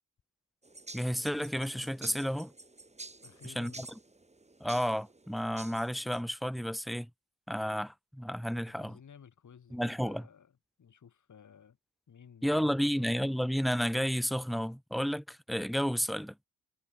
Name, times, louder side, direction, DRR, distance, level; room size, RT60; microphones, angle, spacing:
sound 1, 0.6-6.2, right 2 dB, 20° right, 7.0 m, -50 dB
voice 1, 0.9-2.5 3.4-3.9 4.6-7.1 7.5-9.0 9.7-10.2 12.4-16.3, equal, ahead, 0.3 m, -32 dB
voice 2, 3.2-3.9 8.5-10.5 10.8-11.8 12.1-13.1, left 7 dB, 55° left, 6.4 m, -55 dB
cardioid pair, 80°, 36 cm